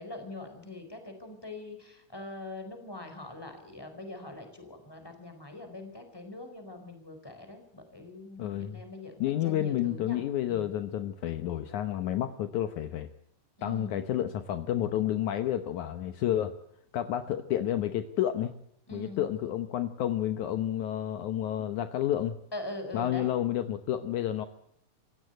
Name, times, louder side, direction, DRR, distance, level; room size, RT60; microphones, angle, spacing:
voice 1, 0.0-9.1 9.4-10.2 10.5-10.7 13.6-14.0 18.9-19.3 22.5-23.3, left 2 dB, 5° left, 6 dB, 4.2 m, -43 dB
voice 2, 8.4-8.8 9.2-13.1 13.6-16.5 16.9-18.5 18.9-22.4 22.9-24.5, left 11 dB, 70° left, 9 dB, 2.3 m, -30 dB
27.0 x 16.0 x 7.9 m, 0.72 s
omnidirectional pair, 3.8 m